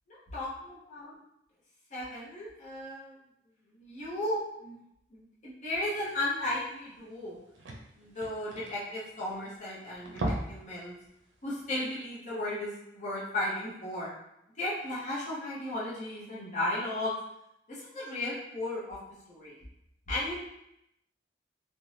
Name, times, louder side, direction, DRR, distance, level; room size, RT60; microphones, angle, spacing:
voice 1, 0.3-1.2 1.9-3.1 3.7-4.7 5.1-7.4 8.0-10.9 11.4-14.1 14.6-17.1 17.7-19.0 19.3-19.5 20.1-20.3, left 1 dB, 40° left, -7 dB, 0.7 m, -35 dB
sound 1, 6.6-6.7 7.0-7.1 7.3-9.6 9.9-10.7 11.0-11.2 11.6-11.7, right 1 dB, 85° right, 0.5 m, -36 dB
2.5 x 2.1 x 3.1 m, 0.80 s
head